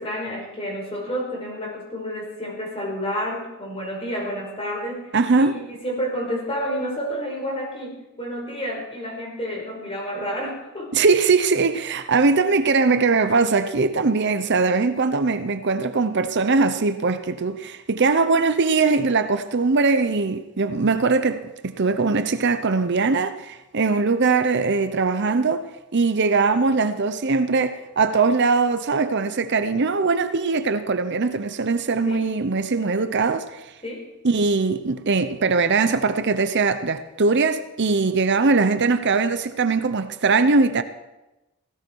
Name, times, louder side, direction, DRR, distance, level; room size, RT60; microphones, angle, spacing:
voice 1, 0.0-10.9 32.0-32.3 33.8-34.1, equal, 25° left, 5.1 m, -30 dB
voice 2, 5.1-5.6 10.9-25.7 25.9-33.7 34.2-40.8, right 4 dB, 55° right, 0.7 m, -21 dB
17.0 x 16.5 x 4.7 m
head